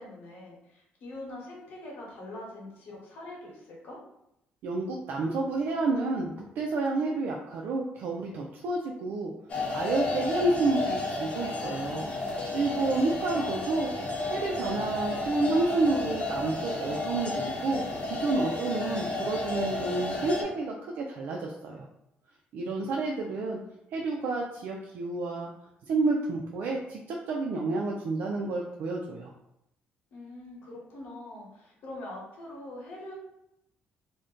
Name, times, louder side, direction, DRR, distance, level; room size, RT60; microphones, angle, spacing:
voice 1, 0.0-4.0 12.7-13.6 30.1-33.1, left 1 dB, 75° left, -3 dB, 1.0 m, -43 dB
voice 2, 4.6-9.3 9.7-12.0 12.5-13.9 14.3-21.9 22.5-23.6 23.9-25.5 25.9-29.3, right 3 dB, 70° right, -1 dB, 0.4 m, -30 dB
sound 1, 9.5-20.4, left 2 dB, 40° left, 0.7 m, -32 dB
2.5 x 2.1 x 3.6 m, 0.82 s
cardioid pair, 130°, 3 cm